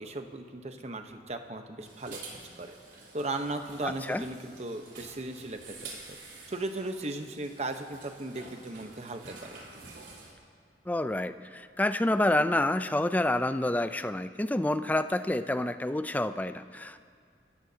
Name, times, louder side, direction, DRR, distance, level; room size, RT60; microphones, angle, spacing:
voice 1, 0.0-2.8 3.1-6.2 6.5-9.6, right 2 dB, 40° right, 6 dB, 1.0 m, -37 dB
sound 1, 1.8-10.3, right 3 dB, 85° right, 3.7 m, -49 dB
voice 2, 3.8-4.2 10.9-17.0, left 1 dB, 10° left, 11 dB, 0.4 m, -28 dB
28.5 x 14.0 x 2.8 m, 2.2 s
head